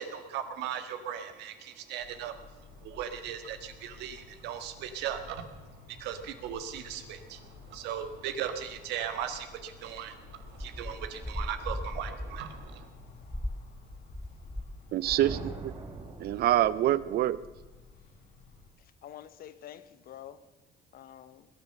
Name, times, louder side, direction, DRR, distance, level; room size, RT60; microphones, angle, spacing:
voice 1, 0.0-2.4 2.8-12.9, right 9 dB, 90° right, 1.7 m, -38 dB
sound 1, 2.0-18.7, left 5 dB, 75° left, 3.1 m, -53 dB
sound 2, 10.5-14.8 15.0-15.4, left 1 dB, 5° left, 0.5 m, -38 dB
voice 2, 14.9-15.7 16.2-17.4, right 13 dB, 65° right, 0.6 m, -26 dB
sound 3, 15.2-17.1, right 3 dB, 35° right, 4.0 m, -42 dB
voice 3, 19.0-20.4 20.9-21.5, left 11 dB, 60° left, 1.0 m, -47 dB
20.5 x 8.9 x 6.6 m
cardioid pair, 110°, 17 cm